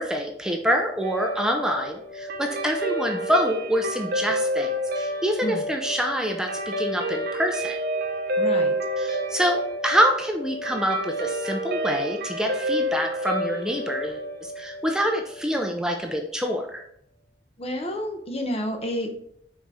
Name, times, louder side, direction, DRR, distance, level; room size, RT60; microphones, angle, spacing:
voice 1, 0.0-4.7 5.0-7.8 9.0-16.8, equal, 5° right, 2 dB, 0.6 m, -26 dB
Guitar, 1.0-15.6, right 1 dB, 60° right, 0.8 m, -29 dB
voice 2, 8.4-8.7 17.6-19.2, equal, 35° left, 5 dB, 0.9 m, -30 dB
5.7 x 4.2 x 4.8 m, 0.70 s
head